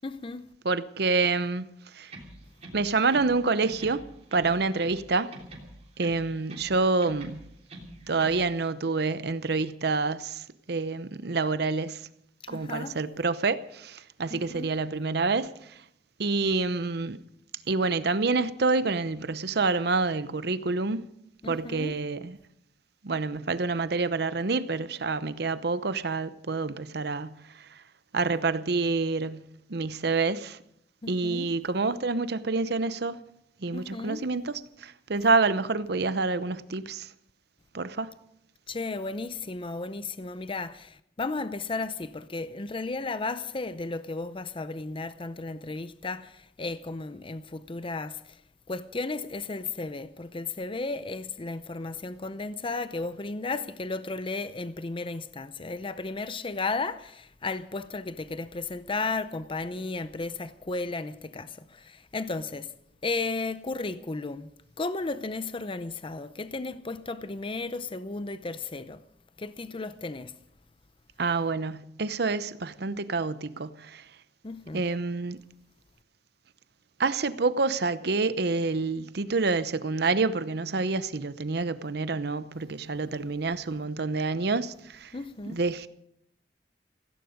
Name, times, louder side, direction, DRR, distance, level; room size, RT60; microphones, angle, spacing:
voice 1, 0.0-0.5 12.4-13.0 14.3-14.7 21.4-22.0 31.0-31.5 33.7-34.3 38.7-48.4 48.7-62.7 63.0-64.5 64.8-69.0 69.4-70.4 74.4-74.8 85.1-85.6, left 3 dB, 30° left, 0.6 m, -34 dB
voice 2, 0.6-1.7 1.9-2.1 2.7-4.0 4.3-5.4 6.0-7.4 8.1-12.1 12.5-15.8 16.2-17.2 17.7-21.0 21.4-22.4 23.0-27.8 28.1-30.6 31.1-33.2 33.6-37.1 37.7-38.1 71.2-74.0 74.7-75.4 77.0-85.1 85.5-85.9, right 3 dB, 65° right, 0.8 m, -27 dB
sound 1, 2.1-3.4 3.6-5.0 5.3-6.7 7.0-8.4, right 1 dB, 40° right, 3.3 m, -45 dB
16.5 x 16.5 x 5.2 m
head